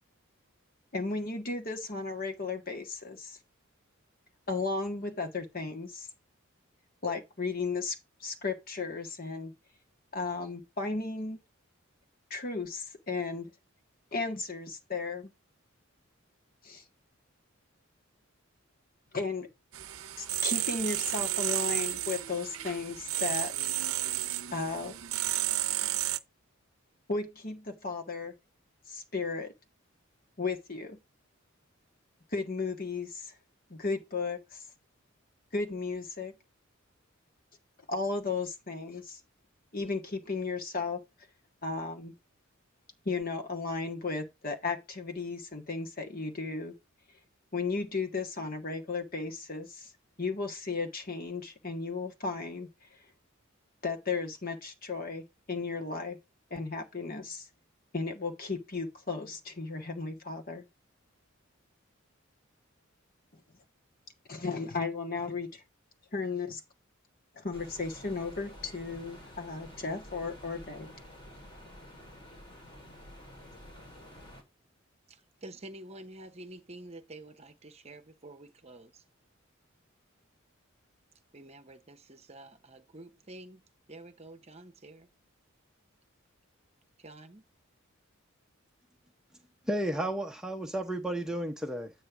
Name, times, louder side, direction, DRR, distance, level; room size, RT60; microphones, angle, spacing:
voice 1, 0.9-3.4 4.5-6.1 7.0-9.5 10.1-11.4 12.3-13.5 14.1-15.3 16.6-16.8 19.1-19.5 20.2-23.7 24.5-24.9 27.1-28.3 28.9-29.5 30.4-31.0 32.3-33.3 33.7-34.6 35.5-36.3 37.9-39.2 39.7-41.0 41.6-42.1 43.0-46.7 47.5-49.9 50.2-52.7 53.8-56.2 56.5-57.5 57.9-60.6 64.3-65.6 66.1-66.6 67.4-70.9, left 4 dB, 45° left, 1.6 m, -35 dB
sound 1, 19.7-26.2, right 14 dB, 85° right, 0.6 m, -32 dB
sound 2, 67.5-74.4, left 1 dB, 25° left, 2.7 m, -50 dB
voice 2, 75.1-79.0 81.3-85.1 87.0-87.4, right 2 dB, 30° right, 0.9 m, -49 dB
voice 3, 89.7-91.9, right 1 dB, 5° right, 0.8 m, -32 dB
8.6 x 3.1 x 6.0 m
head